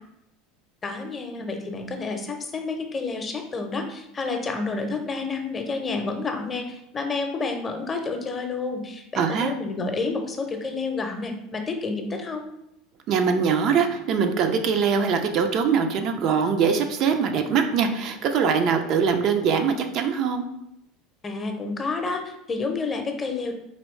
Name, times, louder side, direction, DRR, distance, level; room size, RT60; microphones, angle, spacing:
voice 1, 0.8-12.4 21.2-23.6, left 3 dB, 25° left, 4 dB, 0.7 m, -29 dB
voice 2, 9.2-9.5 13.1-20.5, right 6 dB, 50° right, 5 dB, 0.4 m, -22 dB
4.1 x 3.0 x 3.1 m, 0.85 s
figure-of-eight pair, 75°, 0 cm